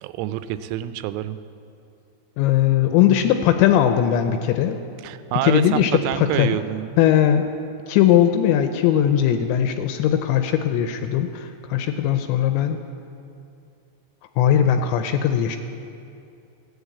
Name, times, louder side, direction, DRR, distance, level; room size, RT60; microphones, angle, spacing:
voice 1, 0.0-1.4 5.0-6.9, right 12 dB, 85° right, 12 dB, 3.1 m, -27 dB
voice 2, 2.4-4.8 5.4-6.6 7.0-7.4 7.9-12.8 14.4-15.6, left 10 dB, 85° left, 7 dB, 2.7 m, -19 dB
15.0 x 9.8 x 8.4 m, 2.6 s
omnidirectional pair, 5.6 m